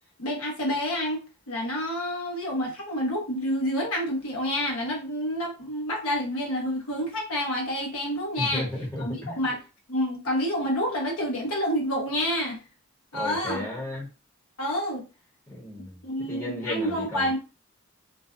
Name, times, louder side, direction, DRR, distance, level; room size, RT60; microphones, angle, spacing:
voice 1, 0.2-1.2 1.5-8.7 9.0-9.6 9.9-12.6 13.1-13.6 14.6-15.1 15.8-17.4, equal, 85° left, 0.9 m, -28 dB
voice 2, 8.4-9.4 13.1-14.1 15.5-16.0 16.3-17.4, left 1 dB, 10° left, 0.9 m, -34 dB
2.5 x 2.2 x 2.3 m
head